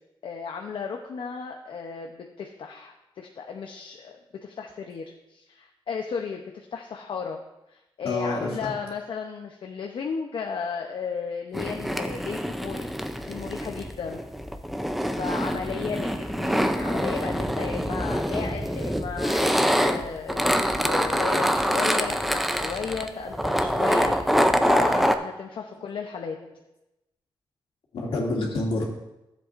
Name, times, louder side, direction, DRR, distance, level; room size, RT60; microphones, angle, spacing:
voice 1, 0.2-7.4 7.7-12.9 13.2-14.2 15.2-20.5 20.8-26.4, left 6 dB, 70° left, 2 dB, 0.7 m, -34 dB
voice 2, 8.0-8.7 15.1-15.2 18.5-18.7 19.2-19.3 22.9-23.3 24.1-24.2 27.9-28.8, left 2 dB, 85° left, -2 dB, 2.4 m, -29 dB
sound 1, 11.5-25.2, equal, ahead, 0.5 m, -25 dB
14.0 x 7.7 x 2.5 m, 0.93 s
wide cardioid pair, 135°, 9 cm